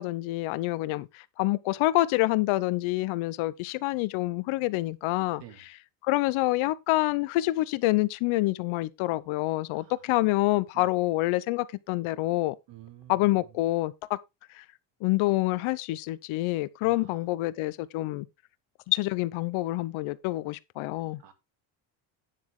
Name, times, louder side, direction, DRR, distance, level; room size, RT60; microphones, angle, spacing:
voice 1, 0.0-5.4 6.0-12.5 13.1-14.2 14.5-14.6 15.0-18.3 18.9-21.2, left 18 dB, 75° left, 0.9 m, -27 dB
voice 2, 9.7-10.1 10.7-10.9 12.7-13.3 16.8-17.2 20.8-21.3, right 13 dB, 60° right, 2.3 m, -51 dB
9.6 x 7.5 x 3.8 m
cardioid pair, 155°, 49 cm